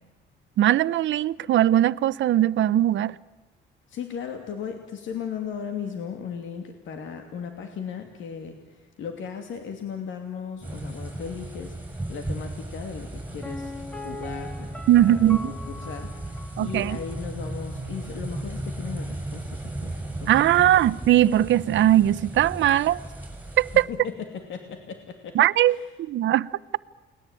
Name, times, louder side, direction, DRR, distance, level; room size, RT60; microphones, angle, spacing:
voice 1, 0.6-3.2 14.9-15.5 16.6-17.0 20.3-23.0 23.6-23.9 25.3-25.8 26.1-26.5, right 12 dB, 70° right, 0.8 m, -20 dB
voice 2, 3.9-11.7 12.1-13.7 14.0-14.7 14.9-19.4 19.8-20.7 23.9-25.4 25.7-25.8, left 7 dB, 75° left, 2.7 m, -36 dB
sound 1, 10.6-23.8, right 1 dB, 10° right, 7.1 m, -36 dB
Piano, 13.4-17.2 17.4-17.5, left 2 dB, 5° left, 2.5 m, -40 dB
30.0 x 20.0 x 9.1 m
cardioid pair, 90°, 20 cm